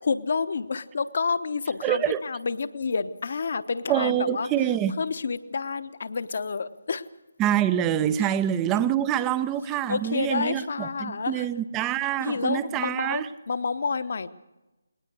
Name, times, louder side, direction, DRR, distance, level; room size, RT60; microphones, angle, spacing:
voice 1, 0.0-4.5 5.0-7.0 8.2-8.3 9.9-11.5 12.2-14.3, left 5 dB, 50° left, 1.0 m, -29 dB
voice 2, 1.8-2.2 3.9-5.0 7.4-13.3, right 11 dB, 15° right, 0.6 m, -25 dB
21.0 x 19.5 x 6.4 m
figure-of-eight pair, 150°, 0 cm